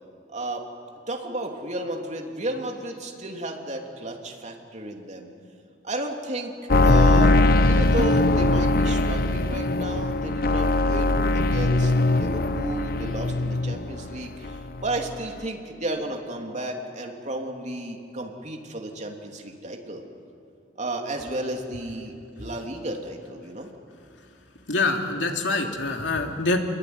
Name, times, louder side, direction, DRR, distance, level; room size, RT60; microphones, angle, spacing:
voice 1, 0.3-0.6 1.1-5.3 5.8-6.5 6.8-7.4 7.6-20.0 20.8-23.7, right 1 dB, 40° right, 2 dB, 3.1 m, -33 dB
sound 1, 6.7-14.2 14.4-15.1 15.4-15.5, left 2 dB, 55° left, 0.8 m, -21 dB
voice 2, 24.7-26.6, left 3 dB, 85° left, 3 dB, 2.9 m, -25 dB
28.5 x 22.0 x 9.6 m, 2.4 s
head